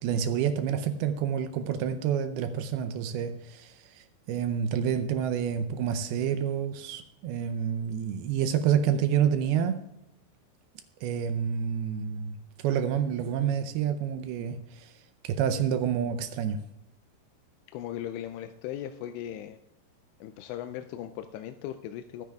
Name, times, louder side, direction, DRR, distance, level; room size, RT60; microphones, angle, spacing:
voice 1, 0.0-9.8 11.0-14.9 15.2-16.6, right 8 dB, 80° right, 2.3 m, -28 dB
voice 2, 17.7-19.6 20.2-22.3, left 11 dB, 80° left, 2.6 m, -38 dB
23.5 x 10.5 x 2.3 m
omnidirectional pair, 5.2 m